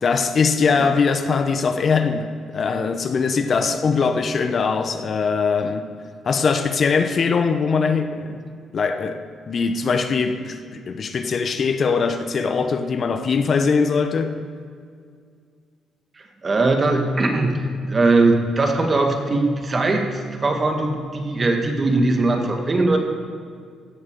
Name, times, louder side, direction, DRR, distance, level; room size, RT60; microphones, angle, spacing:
voice 1, 0.0-5.9 6.2-8.4 8.7-14.4, left 5 dB, 50° left, 0.8 m, -21 dB
voice 2, 16.2-23.0, right 2 dB, 35° right, 1.9 m, -20 dB
16.5 x 6.9 x 6.9 m
cardioid pair, 90°, 0 cm